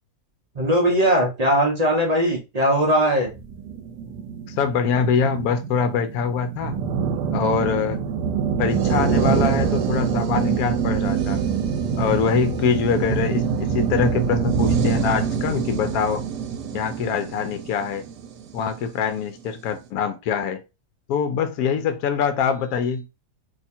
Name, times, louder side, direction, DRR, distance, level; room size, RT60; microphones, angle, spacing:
voice 1, 0.6-3.3 12.3-12.4, equal, 55° right, 0.4 m, -20 dB
sound 1, 3.3-18.8, right 7 dB, 85° right, 1.2 m, -25 dB
voice 2, 4.6-6.8 7.3-8.0 8.6-11.4 12.0-16.2 16.7-18.1 18.5-20.6 21.1-23.1, left 6 dB, 70° left, 1.0 m, -24 dB
2.8 x 2.4 x 4.1 m
omnidirectional pair, 1.7 m